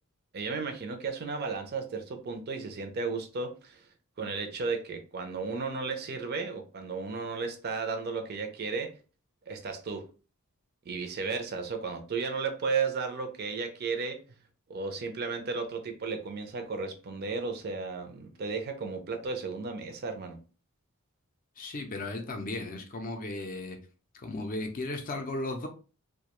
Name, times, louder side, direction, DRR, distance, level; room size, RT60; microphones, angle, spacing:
voice 1, 0.3-3.9 4.2-9.0 9.5-10.1 10.9-14.2 14.7-20.4, right 4 dB, 45° right, 0.4 m, -34 dB
voice 2, 21.6-23.8 24.1-25.7, left 2 dB, 40° left, 0.4 m, -35 dB
2.3 x 2.1 x 2.9 m
head